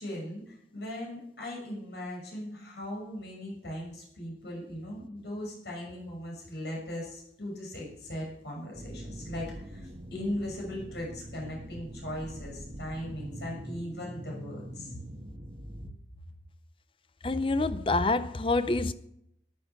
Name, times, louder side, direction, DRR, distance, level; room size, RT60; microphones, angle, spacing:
voice 1, 0.0-15.0, left 1 dB, 70° left, 6.4 m, -39 dB
sound 1, 8.7-15.9, right 1 dB, 35° right, 1.4 m, -43 dB
voice 2, 17.2-18.9, left 2 dB, 30° left, 0.5 m, -27 dB
13.5 x 10.5 x 5.9 m
head